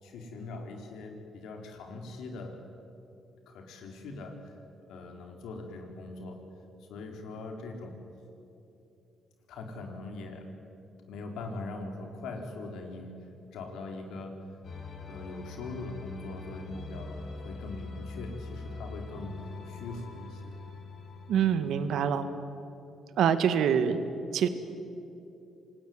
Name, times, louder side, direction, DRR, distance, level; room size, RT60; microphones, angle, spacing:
voice 1, 0.0-2.6 3.5-4.5 4.9-6.4 6.8-8.0 9.5-10.5 11.0-14.4 14.9-19.4 19.7-20.6, left 2 dB, 85° left, 3 dB, 4.3 m, -41 dB
sound 1, 14.6-22.0, left 3 dB, 60° left, 5.4 m, -43 dB
voice 2, 21.3-22.3 23.2-24.0 24.3-24.5, right 8 dB, 75° right, 10 dB, 1.8 m, -25 dB
27.5 x 19.5 x 9.7 m, 2.8 s
cardioid pair, 90°, 0 cm